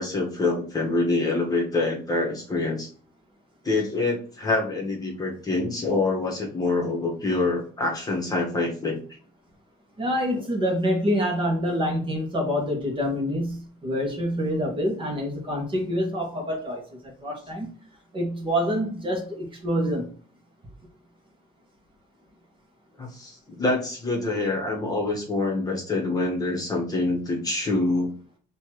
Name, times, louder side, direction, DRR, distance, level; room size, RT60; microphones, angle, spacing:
voice 1, 0.0-2.9 3.6-9.0 10.3-10.4 23.0-28.1, left 2 dB, 20° left, -1 dB, 1.4 m, -26 dB
voice 2, 10.0-16.8 17.2-17.7 18.1-20.1, equal, 30° right, 1 dB, 1.6 m, -26 dB
5.7 x 3.0 x 3.1 m, 0.43 s
cardioid pair, 110°, 17 cm